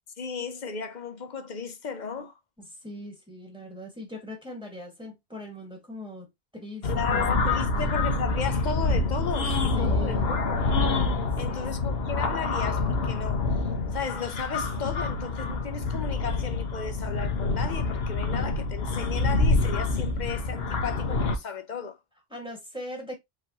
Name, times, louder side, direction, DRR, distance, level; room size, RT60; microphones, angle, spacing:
voice 1, 0.2-2.4 6.8-10.7 11.3-13.5 13.9-22.0, left 6 dB, 50° left, 0.9 m, -35 dB
voice 2, 2.6-6.3 6.5-8.0 9.8-10.2 11.5-12.0 22.3-23.2, left 1 dB, 5° right, 1.8 m, -41 dB
sound 1, 6.8-21.4, left 3 dB, 80° left, 1.2 m, -27 dB
4.9 x 3.4 x 2.9 m
omnidirectional pair, 1.0 m